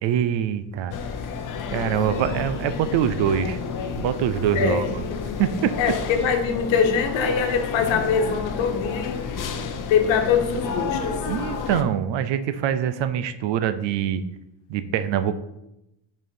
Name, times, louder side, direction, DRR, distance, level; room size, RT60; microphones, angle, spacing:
voice 1, 0.0-0.9 1.7-3.6 4.0-5.0 5.4-5.7 11.3-14.2 14.7-15.3, right 9 dB, 65° right, 12 dB, 0.6 m, -24 dB
sound 1, 0.9-11.8, left 5 dB, 40° left, 0.7 m, -30 dB
voice 2, 4.5-4.9 5.8-9.3 9.9-11.2, left 6 dB, 65° left, 5 dB, 1.2 m, -23 dB
6.5 x 4.2 x 5.4 m, 0.86 s
cardioid pair, 155°, 49 cm